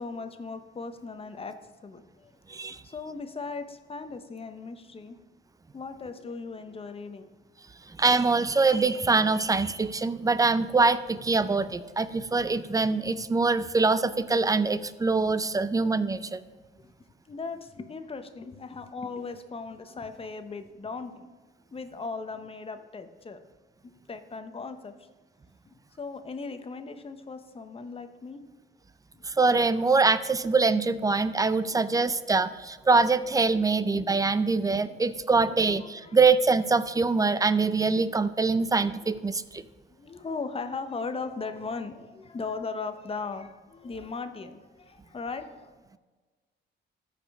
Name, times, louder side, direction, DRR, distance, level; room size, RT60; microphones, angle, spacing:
voice 1, 0.0-5.2 5.7-7.3 12.3-12.4 16.8-16.9 17.3-21.3 21.7-23.4 23.8-24.9 25.7-28.4 29.1-29.2 31.6-31.8 34.9-36.2 37.6-37.7 38.4-38.7 39.0-39.1 39.9-46.0, left 4 dB, 30° left, 9 dB, 0.8 m, -38 dB
voice 2, 2.5-2.8 7.9-16.4 29.2-39.6, right 4 dB, 15° right, 13 dB, 0.5 m, -24 dB
14.0 x 5.0 x 3.5 m, 1.3 s
cardioid pair, 90°, 20 cm